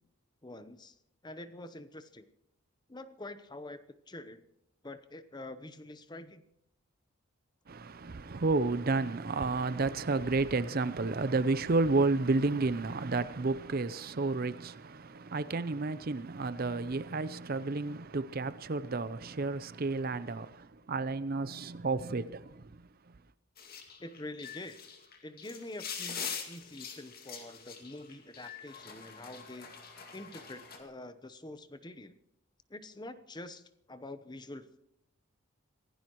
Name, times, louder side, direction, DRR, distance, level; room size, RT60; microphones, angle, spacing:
voice 1, 0.4-0.9 1.2-2.3 2.9-3.8 4.1-4.4 4.8-6.4 24.0-24.8 25.2-29.7 30.1-32.2 32.7-33.6 33.9-34.8, left 1 dB, 20° left, 0.8 m, -46 dB
voice 2, 7.7-22.6, right 3 dB, 40° right, 0.6 m, -31 dB
sound 1, 23.6-30.8, left 7 dB, 45° left, 2.2 m, -44 dB
25.5 x 16.5 x 3.1 m
head